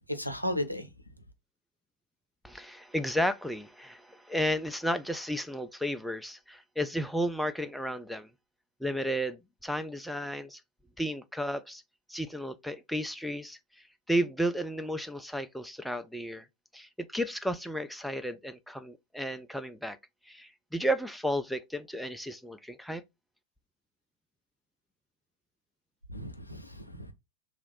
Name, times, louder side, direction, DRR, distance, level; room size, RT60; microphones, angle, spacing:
voice 1, 0.1-0.9 26.1-27.1, left 1 dB, 90° left, 0.5 m, -34 dB
voice 2, 2.4-8.3 8.8-10.6 11.0-11.8 12.1-13.6 14.1-16.5 16.7-20.0 20.3-23.0, equal, ahead, 0.3 m, -33 dB
3.0 x 2.5 x 3.7 m
figure-of-eight pair, 90°, 0 cm